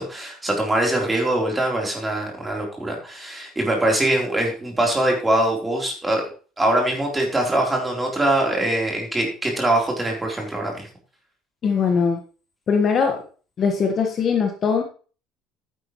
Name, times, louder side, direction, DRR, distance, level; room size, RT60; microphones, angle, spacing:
voice 1, 0.0-6.2 6.6-10.9, right 1 dB, 10° right, 0 dB, 3.9 m, -23 dB
voice 2, 11.6-12.2 12.7-13.2 13.6-14.8, left 5 dB, 35° left, 3 dB, 1.6 m, -20 dB
11.5 x 10.0 x 3.2 m, 0.38 s
cardioid pair, 150°, 0 cm